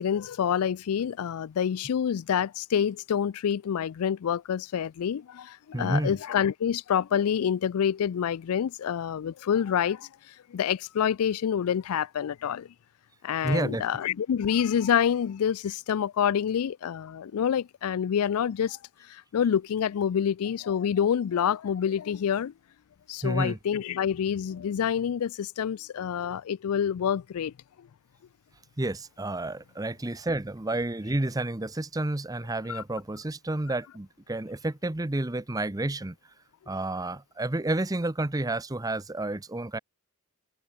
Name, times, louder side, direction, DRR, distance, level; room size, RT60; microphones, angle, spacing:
voice 1, 0.0-10.1 10.5-12.7 13.2-18.8 19.1-22.5 23.1-27.5 27.8-27.9 32.7-32.8, left 8 dB, 80° left, 0.4 m, -27 dB
voice 2, 5.7-6.2 13.4-13.9 23.2-23.6 28.8-36.2 36.7-39.8, right 2 dB, 15° right, 0.7 m, -30 dB
head